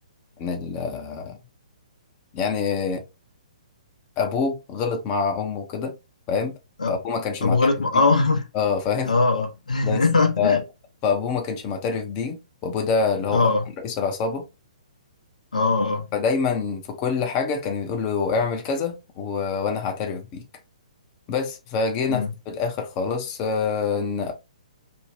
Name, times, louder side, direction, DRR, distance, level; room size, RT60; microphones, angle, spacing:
voice 1, 0.4-1.4 2.3-3.0 4.2-5.9 6.3-6.5 6.9-8.0 8.5-9.1 9.8-10.0 10.4-10.6 11.0-13.5 13.8-14.5 16.1-20.4 21.3-24.3, left 5 dB, 30° left, 0.5 m, -26 dB
voice 2, 7.4-8.4 9.0-10.6 13.3-13.6 15.5-16.0 22.1-22.3, left 3 dB, 80° left, 0.7 m, -21 dB
2.6 x 2.1 x 3.0 m
figure-of-eight pair, 125°, 4 cm